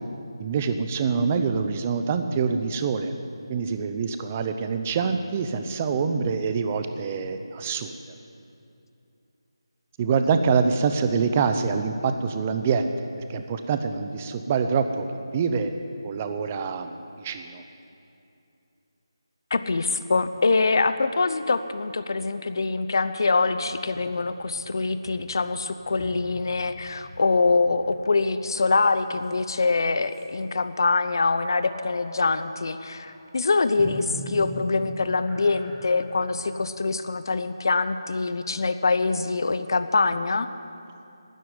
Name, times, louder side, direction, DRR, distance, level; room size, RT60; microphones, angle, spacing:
voice 1, 0.4-3.2 3.5-7.9 10.0-15.7 16.0-17.6, right 5 dB, 20° right, 8 dB, 0.6 m, -25 dB
voice 2, 19.5-40.5, left 3 dB, 55° left, 11 dB, 0.8 m, -24 dB
sound 1, 23.9-29.7 30.0-30.3 31.3-37.9, equal, ahead, 1.3 m, -43 dB
12.0 x 10.0 x 9.6 m, 2.7 s
figure-of-eight pair, 165°, 3 cm